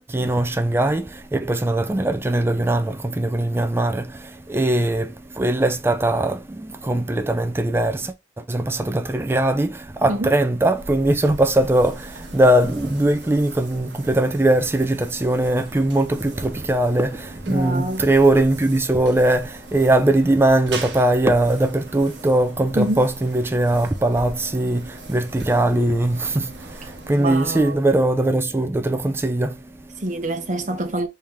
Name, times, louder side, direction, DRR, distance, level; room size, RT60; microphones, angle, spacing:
voice 1, 0.1-30.0, right 1 dB, 15° right, 0.3 m, -20 dB
sound 1, 10.7-28.1, right 2 dB, 90° right, 0.9 m, -40 dB
voice 2, 17.5-18.0 22.7-23.1 27.2-27.8 30.0-31.1, right 1 dB, 45° right, 0.8 m, -26 dB
3.1 x 2.8 x 3.5 m
head